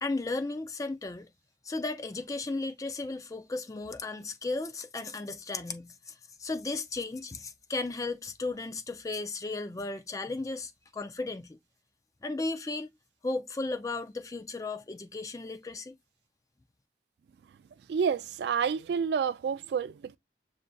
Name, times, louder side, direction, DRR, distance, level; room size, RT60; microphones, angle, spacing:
voice 1, 0.0-1.3 1.6-6.1 6.4-11.6 12.2-12.9 13.2-16.0, left 3 dB, 20° left, 0.3 m, -35 dB
voice 2, 17.9-20.2, right 6 dB, 70° right, 0.3 m, -29 dB
6.2 x 2.5 x 2.3 m
head